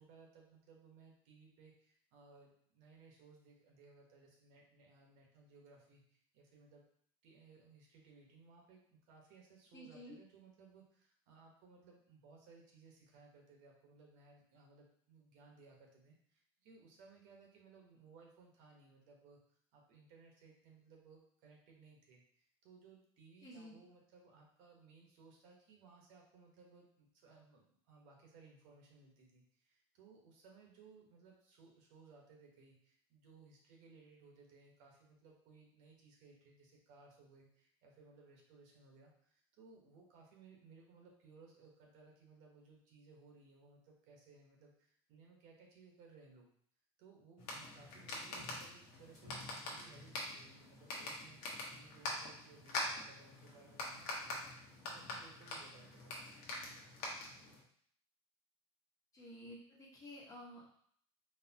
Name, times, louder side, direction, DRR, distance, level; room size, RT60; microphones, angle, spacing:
voice 1, 0.0-6.9 7.2-19.4 19.7-46.5 47.0-56.8, right 4 dB, 65° right, 0 dB, 1.2 m, -62 dB
voice 2, 9.7-10.2 23.4-23.8 59.1-60.7, equal, 25° left, -4 dB, 1.3 m, -52 dB
sound 1, 47.4-57.6, left 2 dB, 60° left, 1.2 m, -45 dB
4.2 x 3.2 x 2.8 m, 0.62 s
supercardioid pair, 135°, 14 cm